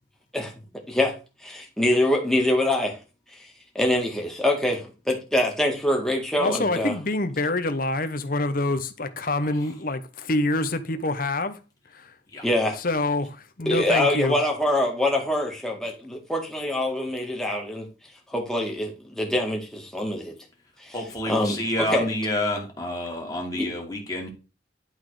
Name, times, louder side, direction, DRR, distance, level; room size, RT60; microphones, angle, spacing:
voice 1, 1.4-3.0 3.8-6.9 12.4-12.8 13.7-17.9 18.3-20.3 20.8-20.9 21.3-21.6 21.9-22.1 23.6-23.7, left 1 dB, 5° left, 2.0 m, -24 dB
voice 2, 6.4-11.6 11.9-12.1 12.8-14.4, left 2 dB, 50° left, 1.0 m, -26 dB
voice 3, 20.9-24.3, left 1 dB, 20° left, 2.5 m, -29 dB
11.0 x 4.0 x 4.9 m
head